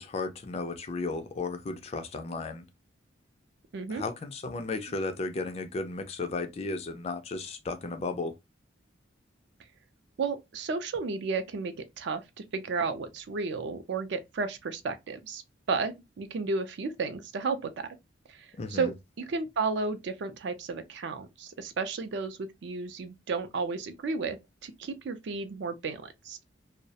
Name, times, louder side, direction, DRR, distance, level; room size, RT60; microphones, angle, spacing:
voice 1, 0.0-2.7 3.9-8.3 18.6-18.9, left 3 dB, 30° left, 0.3 m, -34 dB
voice 2, 3.7-4.0 10.2-12.2 12.5-15.4 15.7-17.9 18.3-18.9 19.2-24.4 24.6-26.4, right 4 dB, 60° right, 0.4 m, -33 dB
2.3 x 2.0 x 2.7 m
head